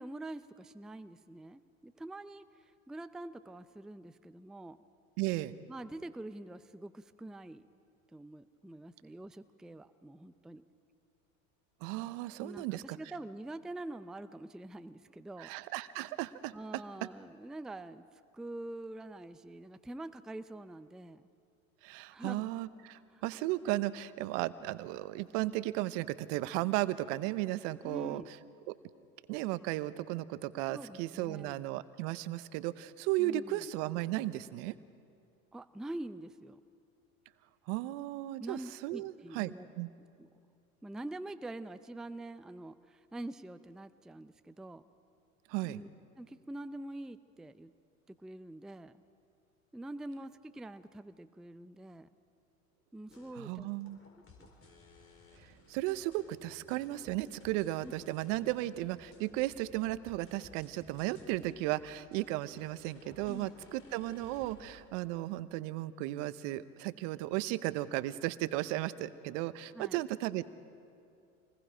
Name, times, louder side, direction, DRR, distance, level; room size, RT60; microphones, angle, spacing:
voice 1, 0.0-4.8 5.7-7.7 8.1-10.6 12.4-15.5 16.5-21.2 22.1-22.5 23.1-23.2 27.8-28.3 30.7-31.6 33.2-33.7 35.5-36.6 38.4-39.7 40.2-40.3 40.8-44.8 45.6-45.9 46.2-47.7 48.1-49.0 49.7-52.1 52.9-53.7 54.4-54.5 57.8-57.9 63.3-63.5 69.7-70.0, right 1 dB, ahead, 11 dB, 0.5 m, -45 dB
voice 2, 5.2-5.6 11.8-13.0 15.4-16.8 21.8-28.2 28.7-28.8 29.3-34.7 37.7-39.9 45.5-45.8 53.4-54.0 55.7-70.4, right 16 dB, 60° right, 15 dB, 0.9 m, -35 dB
sound 1, 53.1-64.9, left 3 dB, 30° left, 4.6 m, -58 dB
27.5 x 20.5 x 5.1 m, 2.4 s
hypercardioid pair, 90°, 42 cm